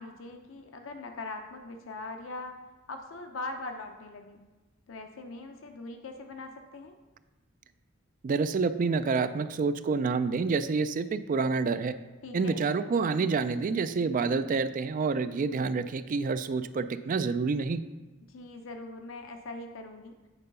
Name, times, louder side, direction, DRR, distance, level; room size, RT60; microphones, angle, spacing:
voice 1, 0.0-2.5 2.9-4.4 4.9-6.9 12.2-12.6 18.3-20.2, left 2 dB, 80° left, 5 dB, 0.6 m, -41 dB
voice 2, 8.2-11.9 12.3-17.8, right 4 dB, 45° right, 12 dB, 0.3 m, -28 dB
8.8 x 3.8 x 5.4 m, 1.2 s
head